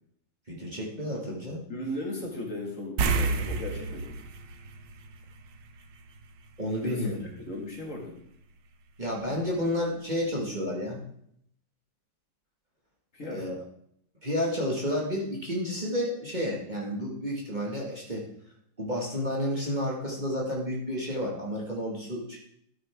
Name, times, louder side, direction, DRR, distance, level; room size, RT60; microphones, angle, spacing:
voice 1, 0.5-1.6 6.6-7.2 9.0-11.0 13.2-13.6 14.2-18.2 18.8-22.4, equal, 25° right, -4 dB, 1.9 m, -31 dB
voice 2, 1.7-4.2 6.8-8.2 13.1-13.5, left 1 dB, 45° left, 0 dB, 2.2 m, -37 dB
sound 1, 3.0-5.8 6.1-6.3 9.1-9.2 9.6-9.7, right 4 dB, 85° right, 1.5 m, -30 dB
13.0 x 8.7 x 3.6 m, 0.70 s
omnidirectional pair, 1.9 m